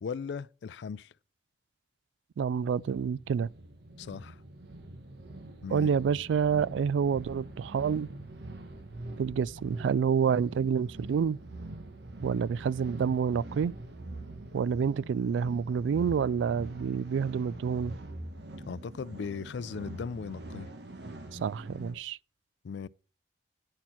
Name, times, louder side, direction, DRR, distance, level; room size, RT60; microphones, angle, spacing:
voice 1, 0.0-1.1 4.0-4.4 5.6-5.9 18.7-20.7 22.6-22.9, left 6 dB, 70° left, 0.4 m, -37 dB
voice 2, 2.4-3.5 5.7-8.1 9.2-11.4 12.2-13.7 14.5-17.9 21.3-22.2, right 6 dB, 80° right, 0.3 m, -28 dB
sound 1, 2.5-22.0, right 1 dB, 65° right, 1.1 m, -44 dB
9.7 x 4.3 x 5.8 m
head